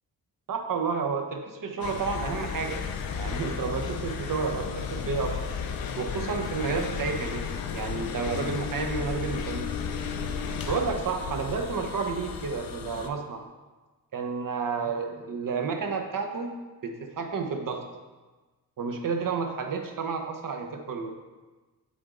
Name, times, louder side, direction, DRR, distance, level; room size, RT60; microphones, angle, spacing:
voice 1, 0.5-2.8 3.1-5.5 6.0-7.5 7.7-9.7 10.7-13.4 14.1-16.6 16.8-17.8 18.8-21.1, right 5 dB, 60° right, 4 dB, 0.9 m, -31 dB
sound 1, 1.8-13.1, left 6 dB, 70° left, 0.6 m, -33 dB
8.4 x 3.7 x 3.8 m, 1.2 s
cardioid pair, 80°, 37 cm